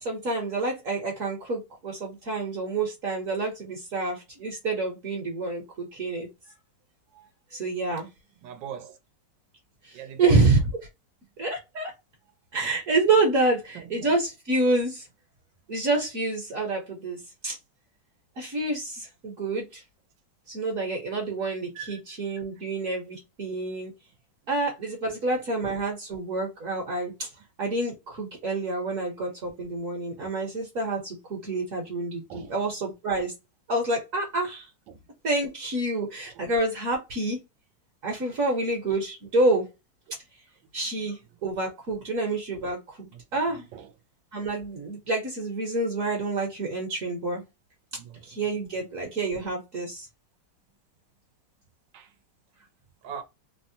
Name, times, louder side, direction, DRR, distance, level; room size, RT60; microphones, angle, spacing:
voice 1, 0.0-6.3 7.5-8.1 9.8-10.6 11.4-11.9 12.5-15.1 15.7-17.6 18.4-19.8 20.5-23.9 24.5-27.3 27.6-33.3 33.7-34.7 35.2-37.4 38.0-39.7 40.7-43.7 44.3-47.4 48.2-50.1, right 2 dB, 55° right, 1.1 m, -28 dB
voice 2, 8.4-9.0 9.9-10.4 13.7-14.1 21.7-22.0 22.6-22.7 32.3-32.6 34.9-35.1 36.2-36.4 38.3-38.4 43.1-43.2 43.5-43.9 47.9-48.5 51.9-52.1 53.0-53.2, right 8 dB, 90° right, 1.4 m, -41 dB
3.3 x 2.1 x 2.6 m
omnidirectional pair, 1.9 m